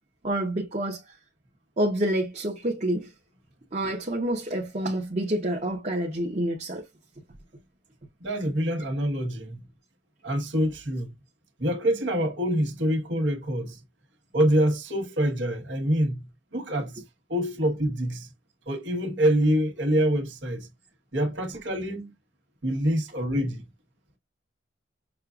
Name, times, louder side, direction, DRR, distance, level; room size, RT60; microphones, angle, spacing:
voice 1, 0.2-1.0 1.8-3.1 3.7-6.8, right 1 dB, 35° right, 1.0 m, -28 dB
voice 2, 8.2-9.7 10.2-11.2 11.6-13.8 14.3-17.0 17.3-18.3 18.7-20.7 21.1-22.1 22.6-23.6, equal, 70° right, 1.4 m, -26 dB
6.4 x 2.4 x 2.4 m
head